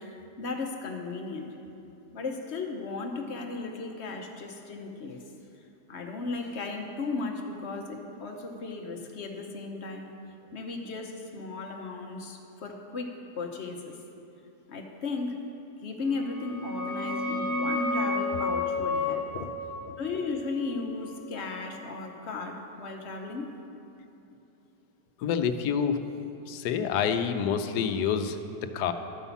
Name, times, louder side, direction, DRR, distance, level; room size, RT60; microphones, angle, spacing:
voice 1, 0.0-1.5 2.1-5.2 5.9-10.1 10.5-13.1 13.4-13.9 14.7-15.4 15.8-19.2 20.0-23.5, left 3 dB, 50° left, 3 dB, 1.0 m, -35 dB
sound 1, 16.2-21.6, left 2 dB, 15° left, 0.6 m, -32 dB
voice 2, 25.2-26.0 26.5-28.9, left 7 dB, 75° left, 9 dB, 1.1 m, -28 dB
12.0 x 5.5 x 7.0 m, 2.9 s
omnidirectional pair, 1.8 m